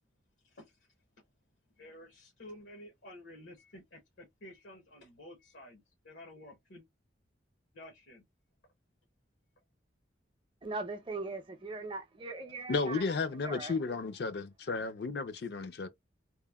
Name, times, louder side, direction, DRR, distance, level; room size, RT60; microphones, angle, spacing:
voice 1, 1.8-6.8 7.7-8.2, left 1 dB, 85° left, 0.8 m, -52 dB
voice 2, 10.6-13.0 13.4-13.8, right 3 dB, 30° right, 0.5 m, -40 dB
voice 3, 12.7-15.9, left 4 dB, 60° left, 0.4 m, -33 dB
2.9 x 2.0 x 2.2 m
head